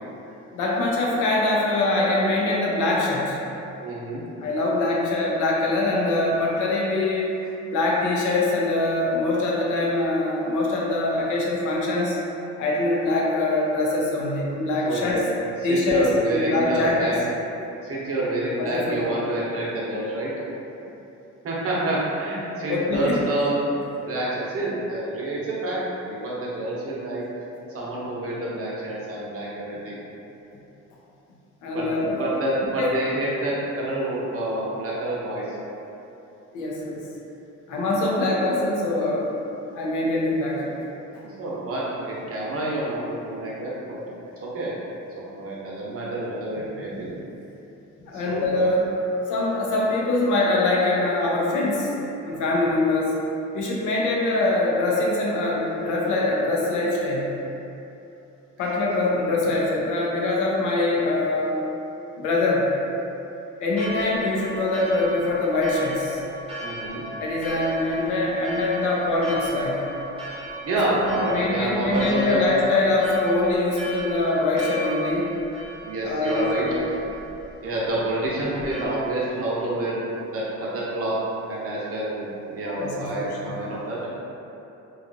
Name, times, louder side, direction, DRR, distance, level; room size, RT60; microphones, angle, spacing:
voice 1, 0.5-3.4 4.4-7.3 7.7-12.2 12.6-15.2 15.6-17.1 18.6-19.1 22.7-23.2 31.6-32.2 32.8-33.0 36.5-37.0 37.7-39.3 39.7-40.8 41.1-41.2 46.9-47.1 48.0-48.8 49.3-52.0 52.3-53.1 53.5-57.3 58.6-61.6 62.2-62.7 63.6-66.2 67.2-69.8 70.8-75.3 76.0-76.9 82.8-83.8, left 2 dB, 85° left, -4 dB, 0.6 m, -23 dB
voice 2, 3.8-4.2 14.9-15.2 15.6-17.2 17.8-20.3 21.4-23.6 24.0-25.8 26.1-27.2 27.7-29.9 31.7-35.4 41.4-44.0 44.5-44.7 45.2-47.1 48.1-48.7 66.6-67.0 70.6-72.4 75.8-76.9 77.6-80.0 80.3-81.2 81.5-84.1, right 1 dB, 50° right, -6 dB, 0.8 m, -28 dB
Church bell, 63.7-78.9, right 1 dB, 20° right, 0.8 m, -36 dB
2.8 x 2.4 x 2.5 m, 2.9 s
cardioid pair, 90°, 30 cm